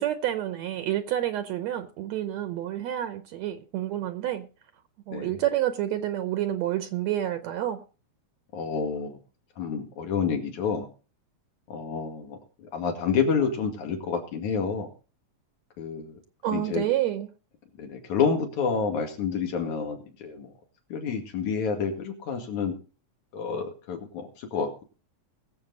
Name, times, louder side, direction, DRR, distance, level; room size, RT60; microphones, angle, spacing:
voice 1, 0.0-4.5 5.1-7.8 16.4-17.3, right 12 dB, 75° right, 1.9 m, -29 dB
voice 2, 5.1-5.4 8.5-9.2 9.6-10.9 11.7-14.9 15.8-16.2 16.5-16.8 17.8-20.5 20.9-22.8 23.3-24.8, left 6 dB, 75° left, 3.6 m, -29 dB
21.0 x 7.5 x 4.0 m
omnidirectional pair, 3.4 m